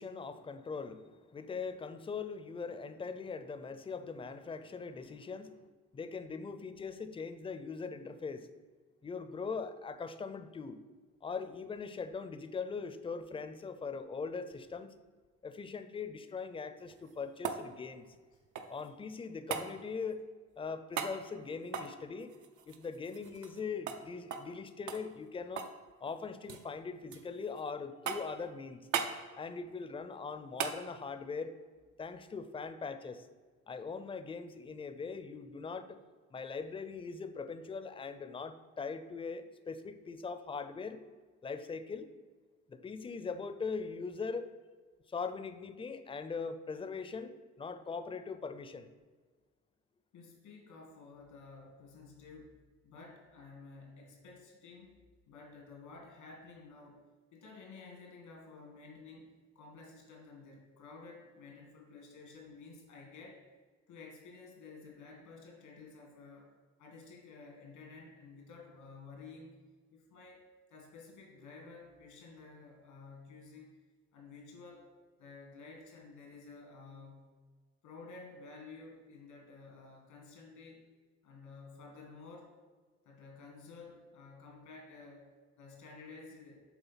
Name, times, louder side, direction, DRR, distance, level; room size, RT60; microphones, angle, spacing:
voice 1, 0.0-5.6 5.9-8.5 9.0-10.8 11.2-14.9 15.4-18.0 18.7-20.2 20.6-22.3 22.6-25.7 26.0-28.9 29.3-31.5 32.0-33.3 33.7-36.0 36.3-41.0 41.4-42.1 42.7-44.5 45.1-48.9, left 5 dB, 20° left, 11 dB, 0.4 m, -41 dB
sound 1, 16.8-18.9 19.5-19.7 20.9-21.2 21.7-23.6 23.9-24.0 24.3-24.5 24.9-25.8 26.1-26.7 27.1-27.6 28.1-28.4 28.9-29.2 30.6-30.8 33.2-33.3, right 6 dB, 85° right, 0.7 m, -38 dB
voice 2, 50.1-52.5 52.8-55.0 55.3-63.4 63.9-66.5 66.8-69.6 69.9-73.8 74.1-74.9 75.2-77.4 77.8-80.8 81.2-82.5 83.0-85.3 85.6-86.6, left 4 dB, 90° left, 0 dB, 1.9 m, -52 dB
7.2 x 3.7 x 5.6 m, 1.4 s
cardioid pair, 90°, 30 cm